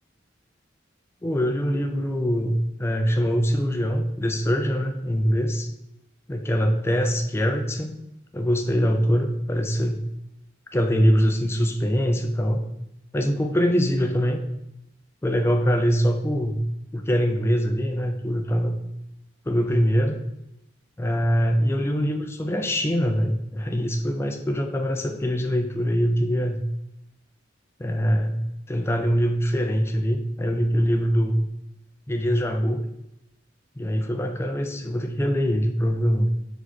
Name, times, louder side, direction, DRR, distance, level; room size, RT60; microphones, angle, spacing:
voice 1, 1.2-5.7 6.3-7.9 8.3-10.0 10.7-12.6 13.1-14.4 15.2-16.6 16.9-18.8 19.5-20.2 21.0-26.6 27.8-28.4 28.7-31.4 32.1-32.9 33.8-36.3, equal, 15° left, 4 dB, 0.4 m, -23 dB
5.1 x 4.9 x 4.1 m, 0.86 s
head